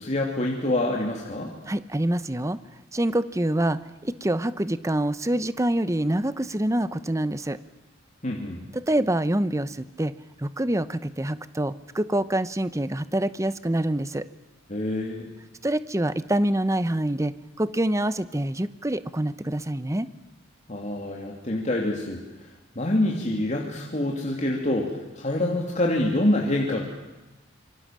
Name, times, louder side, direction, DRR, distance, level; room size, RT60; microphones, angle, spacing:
voice 1, 0.0-1.5 8.2-8.6 14.7-15.3 20.7-26.8, left 1 dB, 35° left, -1 dB, 2.8 m, -26 dB
voice 2, 1.7-2.6 2.9-7.6 8.7-10.1 10.4-14.2 15.6-20.1, right 1 dB, 15° right, 14 dB, 0.8 m, -26 dB
27.0 x 24.0 x 7.5 m, 1.1 s
head